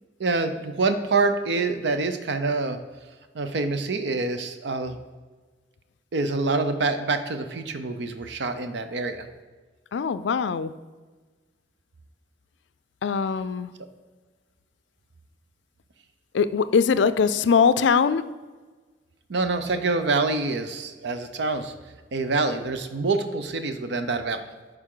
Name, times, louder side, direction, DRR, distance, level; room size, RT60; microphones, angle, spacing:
voice 1, 0.2-2.8 3.3-5.0 6.1-9.3 19.3-21.7 22.1-24.5, right 3 dB, 70° right, 8 dB, 0.6 m, -26 dB
voice 2, 9.9-10.7 13.0-13.7 16.3-18.2, left 6 dB, 70° left, 14 dB, 0.4 m, -21 dB
11.0 x 4.9 x 3.8 m, 1.4 s
head